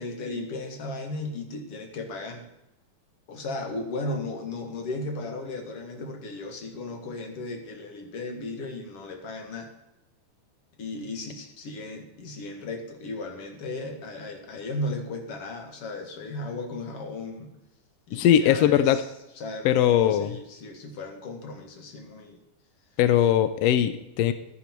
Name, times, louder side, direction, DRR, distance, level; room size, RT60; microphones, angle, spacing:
voice 1, 0.0-2.5 3.3-9.7 10.8-17.5 18.1-19.0 19.4-22.4, left 2 dB, 50° left, 4 dB, 2.6 m, -35 dB
voice 2, 18.1-19.0 19.6-20.3 23.0-24.3, left 10 dB, 85° left, 11 dB, 1.4 m, -20 dB
15.0 x 10.0 x 4.5 m, 0.90 s
omnidirectional pair, 3.6 m